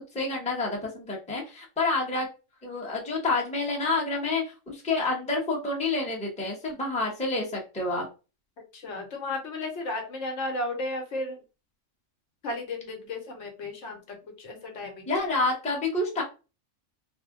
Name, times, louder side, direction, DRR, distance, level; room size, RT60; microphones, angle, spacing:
voice 1, 0.1-2.3 2.6-8.1 15.1-16.2, left 3 dB, 5° left, -2 dB, 0.6 m, -28 dB
voice 2, 8.7-11.4 12.4-15.1, left 2 dB, 65° left, 3 dB, 1.0 m, -34 dB
2.6 x 2.1 x 3.6 m, 0.31 s
omnidirectional pair, 1.3 m